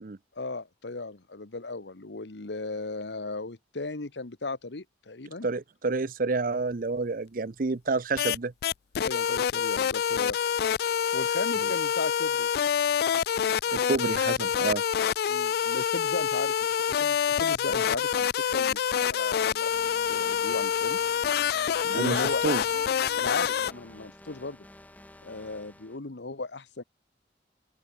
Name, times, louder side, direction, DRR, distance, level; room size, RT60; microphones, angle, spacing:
voice 1, 0.3-5.5 9.0-10.4 11.1-12.5 15.3-19.7 20.1-21.0 21.8-22.4 23.2-24.6 25.2-26.8, left 3 dB, 85° left, 1.3 m, -36 dB
voice 2, 5.4-8.5 11.6-11.7 13.7-14.8 21.9-22.6, right 3 dB, 50° right, 0.7 m, -29 dB
sound 1, 8.2-8.4 8.6-23.7, left 8 dB, 60° left, 0.3 m, -26 dB
sound 2, 19.7-26.0, left 1 dB, 10° left, 1.1 m, -50 dB
open air
head